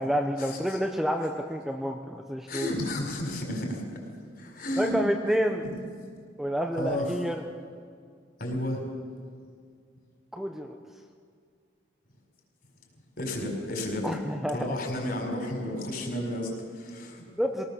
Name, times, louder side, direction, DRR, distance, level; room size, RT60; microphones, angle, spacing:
voice 1, 0.0-2.7 4.8-5.6 6.4-7.4 10.3-10.8 14.0-14.8 17.4-17.6, equal, ahead, 3 dB, 0.8 m, -29 dB
voice 2, 2.5-4.0 4.4-5.0 5.6-5.7 6.7-7.1 8.4-8.9 13.2-14.1 14.5-17.2, left 1 dB, 55° left, 1 dB, 4.7 m, -32 dB
22.5 x 19.0 x 6.9 m, 2.1 s
head